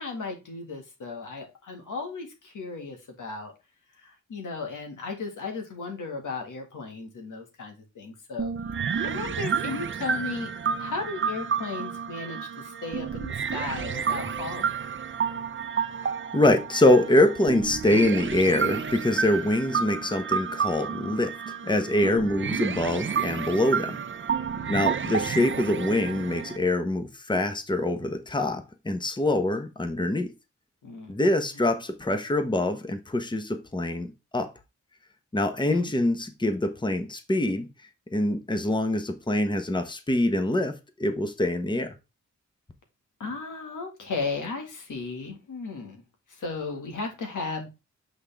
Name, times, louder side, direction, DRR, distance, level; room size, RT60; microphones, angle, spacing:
voice 1, 0.0-3.5 4.0-8.5 8.8-10.5 10.8-14.7 22.0-22.2 24.4-24.8 30.8-31.2 31.5-31.7 35.7-35.9 43.2-46.0 46.4-47.7, left 4 dB, 90° left, 1.7 m, -35 dB
sound 1, 8.4-26.6, right 6 dB, 40° right, 0.6 m, -30 dB
voice 2, 16.0-21.3 21.6-24.0 24.7-30.3 31.1-34.5 35.3-37.7 38.1-40.7 41.0-41.9, left 1 dB, 15° left, 1.0 m, -24 dB
8.0 x 3.8 x 3.5 m
wide cardioid pair, 85°, 30 cm